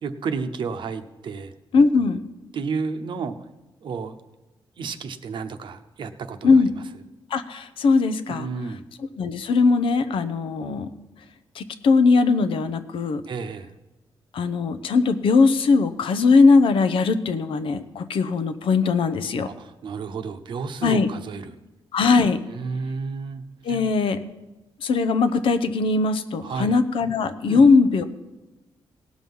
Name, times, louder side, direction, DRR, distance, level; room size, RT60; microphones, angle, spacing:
voice 1, 0.0-1.5 2.5-3.3 3.8-4.1 4.8-6.8 8.3-8.9 13.3-13.7 19.4-21.6 22.5-23.4 23.7-23.8 26.4-26.7 27.5-27.7, right 5 dB, 60° right, 9 dB, 0.9 m, -31 dB
voice 2, 1.7-2.2 6.4-6.7 7.3-8.5 9.2-10.9 11.5-13.2 14.3-19.5 20.8-21.1 21.9-22.4 23.6-24.2 24.8-28.1, left 4 dB, 75° left, 10 dB, 0.8 m, -20 dB
18.0 x 6.1 x 5.5 m, 1.1 s
cardioid pair, 125°, 9 cm